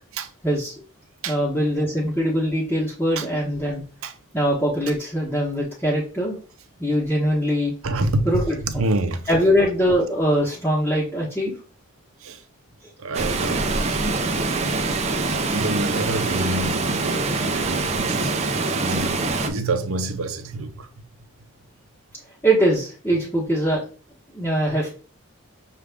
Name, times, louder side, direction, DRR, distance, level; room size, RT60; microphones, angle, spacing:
voice 1, 1.3-3.8 4.3-6.4 6.8-7.7 8.2-8.6 9.3-11.5 22.4-23.8 24.3-25.0, equal, 10° left, 1.0 m, -22 dB
voice 2, 7.8-8.3 8.7-9.2 12.2-12.4 13.0-14.0 15.5-18.3 18.8-20.9, right 2 dB, 75° right, 0.6 m, -27 dB
Water, 13.1-19.5, right 3 dB, 30° right, 0.4 m, -24 dB
6.2 x 2.4 x 3.4 m
head